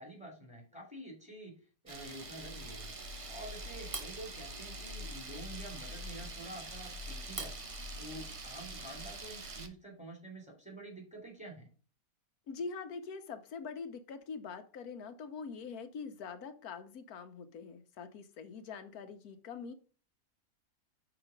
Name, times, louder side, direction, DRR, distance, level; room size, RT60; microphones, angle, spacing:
voice 1, 0.0-1.5 1.8-2.9 3.3-7.6 8.0-11.7, right 2 dB, 5° right, 0 dB, 2.9 m, -48 dB
Camera, 1.9-9.7, right 1 dB, 30° right, 0.7 m, -43 dB
voice 2, 12.5-19.7, left 5 dB, 90° left, 9 dB, 1.4 m, -44 dB
5.9 x 4.8 x 5.1 m, 0.39 s
omnidirectional pair, 1.5 m